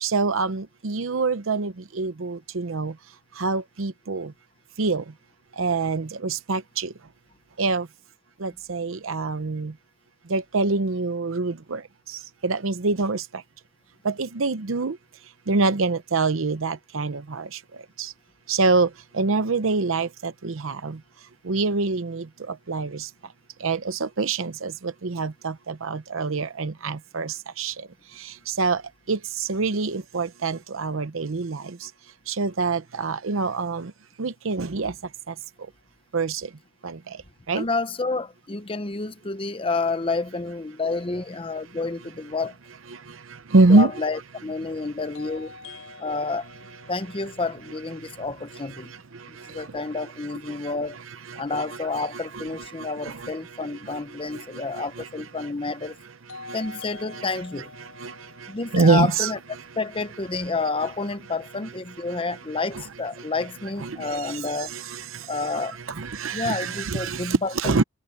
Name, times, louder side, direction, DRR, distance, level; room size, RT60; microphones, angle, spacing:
voice 1, 0.0-1.7 2.0-2.9 3.4-4.3 4.8-5.0 5.6-6.9 7.6-7.8 8.4-9.7 10.3-11.8 12.4-13.2 14.0-14.9 15.5-17.4 18.5-18.9 19.2-20.9 21.5-22.2 22.7-22.9 23.6-24.7 25.0-25.5 25.8-27.7 28.6-28.8 29.1-29.2 29.5-31.6 32.3-33.9 34.2-34.9 36.1-36.4 37.5-37.6 43.5-43.9 51.5-51.6 52.3-52.4 58.0-58.1 58.7-59.3 63.8-64.0 64.7-64.8 66.0-67.8, right 3 dB, 75° right, 0.7 m, -24 dB
voice 2, 37.6-42.6 43.7-45.5 46.0-46.5 46.9-48.9 49.3-51.0 51.4-56.0 56.5-57.7 58.5-59.4 59.8-64.7 65.3-65.8 66.3-67.8, left 3 dB, 25° left, 0.8 m, -29 dB
sound 1, 43.2-43.3 45.1-49.0 56.3-60.3, left 4 dB, 70° left, 7.0 m, -46 dB
head